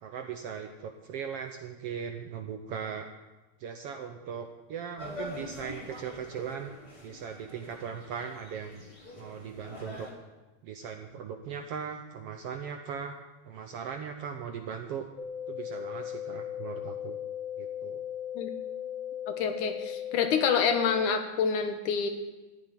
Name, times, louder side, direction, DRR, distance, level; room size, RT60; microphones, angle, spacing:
voice 1, 0.0-3.1 3.6-8.8 9.2-10.1 10.6-13.1 13.5-15.1 15.5-17.2 17.6-18.0, right 7 dB, 70° right, 6 dB, 1.4 m, -39 dB
sound 1, 5.0-10.1, left 1 dB, 15° left, 3.0 m, -45 dB
sound 2, 15.2-21.2, left 10 dB, 60° left, 2.2 m, -37 dB
voice 2, 19.3-22.1, left 6 dB, 80° left, 6 dB, 2.7 m, -27 dB
14.5 x 7.3 x 9.9 m, 1.2 s
omnidirectional pair, 3.5 m